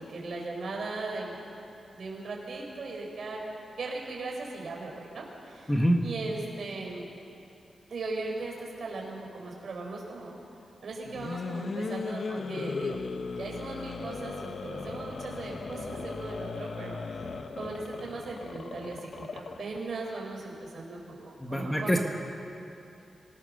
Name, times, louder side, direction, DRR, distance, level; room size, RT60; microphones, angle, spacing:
voice 1, 0.0-1.4 1.9-3.4 3.8-5.7 6.0-7.1 7.9-10.3 10.8-13.0 13.4-17.3 17.5-22.0, right 3 dB, 55° right, -1 dB, 4.9 m, -38 dB
voice 2, 5.7-6.0 21.4-22.0, equal, 10° left, 2 dB, 1.3 m, -25 dB
sound 1, 11.0-19.8, left 4 dB, 50° left, 1.1 m, -37 dB
26.0 x 18.0 x 6.7 m, 2.7 s
wide cardioid pair, 165°, 0 cm